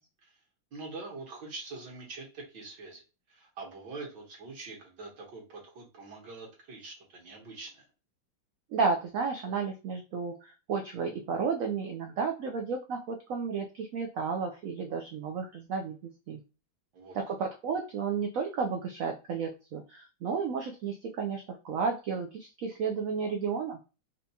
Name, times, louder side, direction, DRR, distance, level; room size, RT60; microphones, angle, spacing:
voice 1, 0.7-3.0 3.3-7.9 16.9-17.2, right 3 dB, 70° right, -2 dB, 1.8 m, -44 dB
voice 2, 8.7-16.4 17.1-23.8, right 5 dB, 85° right, 3 dB, 0.7 m, -32 dB
4.1 x 2.3 x 2.7 m, 0.31 s
omnidirectional pair, 2.0 m